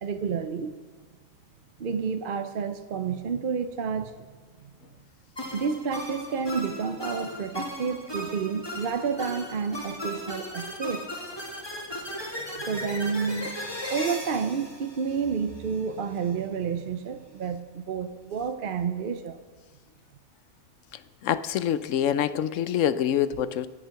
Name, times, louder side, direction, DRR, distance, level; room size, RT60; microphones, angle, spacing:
voice 1, 0.0-0.8 1.8-4.3 4.6-4.7 5.5-11.0 12.7-13.5 13.9-19.4, right 6 dB, 50° right, 8 dB, 0.7 m, -30 dB
sound 1, 5.4-15.7, left 1 dB, 15° left, 2.0 m, -37 dB
voice 2, 21.2-23.7, left 10 dB, 70° left, 14 dB, 0.9 m, -25 dB
21.5 x 7.5 x 5.8 m, 1.3 s
omnidirectional pair, 1.5 m